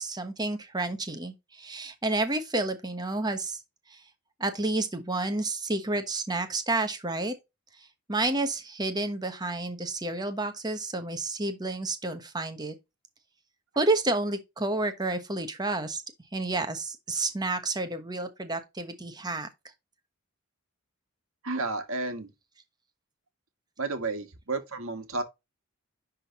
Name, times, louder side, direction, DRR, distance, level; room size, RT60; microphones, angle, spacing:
voice 1, 0.0-3.6 3.9-4.0 4.4-7.3 8.1-12.8 13.8-16.0 16.3-19.5, right 2 dB, 20° right, 1.1 m, -30 dB
voice 2, 21.4-22.3 23.8-25.2, right 3 dB, 65° right, 1.8 m, -32 dB
10.5 x 3.8 x 3.0 m
head